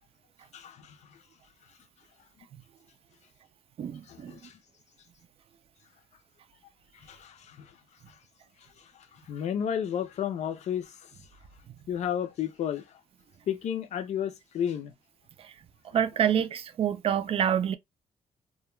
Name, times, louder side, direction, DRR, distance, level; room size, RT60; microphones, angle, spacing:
voice 1, 0.5-1.0 4.1-4.5 7.1-7.7 9.3-10.9 11.9-12.8 13.5-14.9, left 9 dB, 60° left, 0.5 m, -32 dB
voice 2, 3.8-4.3 15.9-17.8, right 9 dB, 50° right, 0.4 m, -27 dB
2.2 x 2.2 x 3.1 m
cardioid pair, 125°, 13 cm